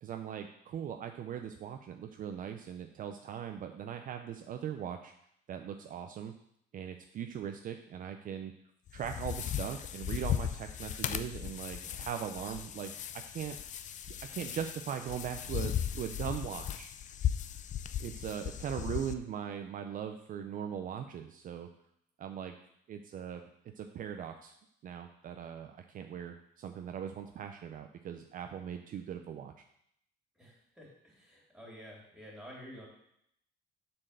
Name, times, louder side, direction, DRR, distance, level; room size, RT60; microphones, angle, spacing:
voice 1, 0.0-5.1 5.5-6.3 6.7-8.5 8.9-12.9 13.3-13.6 14.3-16.9 18.0-21.7 22.2-22.5 22.9-23.4 23.8-24.5 24.8-29.5, right 9 dB, 50° right, 6 dB, 0.5 m, -40 dB
sound 1, 8.9-19.1, left 10 dB, 45° left, 0.4 m, -37 dB
voice 2, 30.3-32.9, equal, ahead, -3 dB, 3.2 m, -50 dB
7.4 x 4.4 x 6.6 m, 0.73 s
cardioid pair, 130°, 18 cm